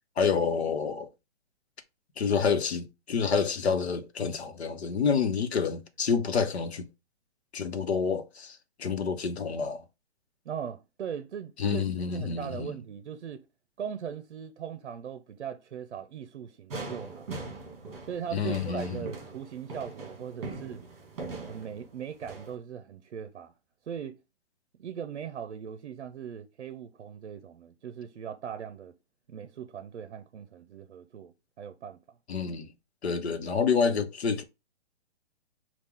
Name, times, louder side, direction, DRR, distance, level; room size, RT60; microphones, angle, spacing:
voice 1, 0.2-1.1 2.2-6.9 7.5-9.8 11.6-12.7 18.3-19.1 32.3-32.7 33.0-34.4, left 6 dB, 70° left, 0.9 m, -28 dB
voice 2, 10.5-13.4 13.8-17.3 18.0-20.8 21.5-23.5 23.9-24.2 24.8-28.9 29.3-32.0, right 8 dB, 75° right, 0.6 m, -39 dB
sound 1, 16.7-22.6, right 3 dB, 35° right, 1.8 m, -41 dB
5.9 x 2.4 x 3.6 m
hypercardioid pair, 180°, 34 cm